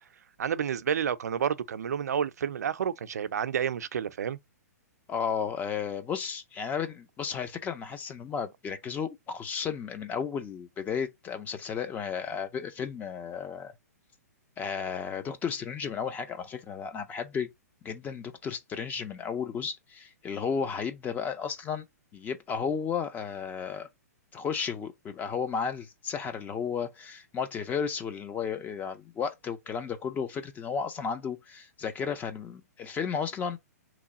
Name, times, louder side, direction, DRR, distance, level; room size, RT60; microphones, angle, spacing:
voice 1, 0.4-4.4, right 8 dB, 70° right, 0.4 m, -30 dB
voice 2, 5.1-13.7 14.6-17.5 17.8-21.8 22.1-23.9 24.3-33.6, left 6 dB, 20° left, 0.4 m, -33 dB
3.0 x 2.3 x 3.8 m
hypercardioid pair, 120°, 9 cm